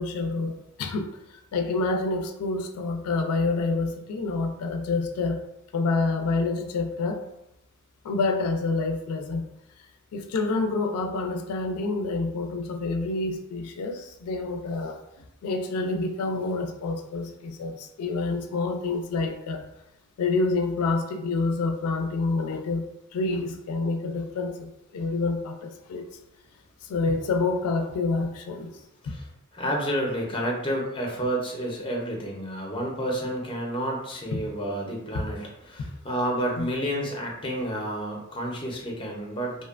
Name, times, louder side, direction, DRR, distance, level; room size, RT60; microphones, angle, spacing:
voice 1, 0.0-5.4 5.7-7.2 8.0-9.4 10.1-15.0 15.4-19.6 20.2-22.8 23.1-26.1 26.8-28.7 34.3-34.4 35.8-35.9 36.6-36.7, left 3 dB, 90° left, 4 dB, 0.3 m, -28 dB
voice 2, 29.5-39.6, right 1 dB, 25° left, -1 dB, 0.5 m, -30 dB
2.6 x 2.1 x 2.4 m, 0.83 s
head